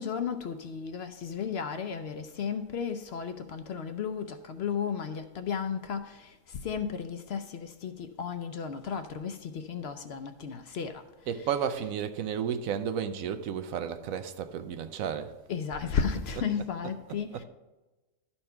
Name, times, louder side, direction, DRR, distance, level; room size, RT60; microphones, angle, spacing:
voice 1, 0.0-11.0 11.3-11.5 15.5-17.4, left 6 dB, 60° left, 0.7 m, -34 dB
voice 2, 11.3-15.3 16.3-16.5 16.8-17.4, right 8 dB, 85° right, 1.1 m, -33 dB
12.0 x 4.4 x 5.6 m
omnidirectional pair, 1.4 m